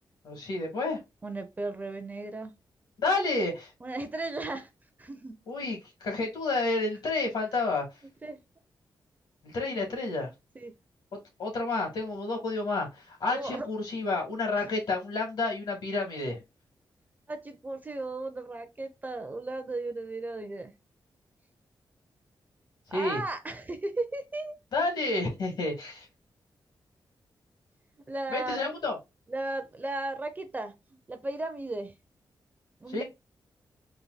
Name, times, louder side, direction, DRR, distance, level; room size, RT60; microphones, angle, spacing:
voice 1, 0.2-1.0 3.0-3.7 5.5-8.0 9.4-10.3 11.4-16.4 22.9-23.2 24.7-26.1 28.3-29.0 32.9-33.0, left 3 dB, 70° left, 2.4 m, -30 dB
voice 2, 1.2-2.5 3.8-4.7 5.0-5.3 8.2-8.4 10.6-10.7 13.3-13.7 14.6-14.7 17.3-20.7 22.9-24.6 28.1-28.6 29.3-31.9 32.8-33.0, right 2 dB, 20° right, 0.6 m, -35 dB
4.1 x 2.5 x 4.0 m
wide cardioid pair, 160°, 8 cm